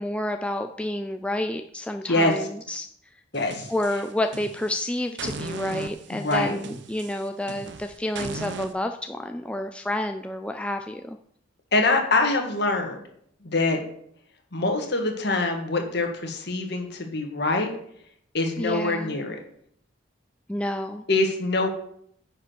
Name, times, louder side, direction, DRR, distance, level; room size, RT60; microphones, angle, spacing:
voice 1, 0.0-2.9 3.7-11.2 18.6-19.2 20.5-21.0, left 1 dB, 5° left, 6 dB, 0.4 m, -29 dB
voice 2, 3.3-3.7 6.1-6.6 11.7-13.0 13.4-13.8 14.5-17.7 18.3-19.4 21.1-21.7, left 2 dB, 55° left, 3 dB, 1.8 m, -24 dB
sound 1, 3.3-4.8 5.2-8.7, right 3 dB, 60° right, 0.8 m, -37 dB
9.8 x 5.0 x 6.4 m, 0.67 s
head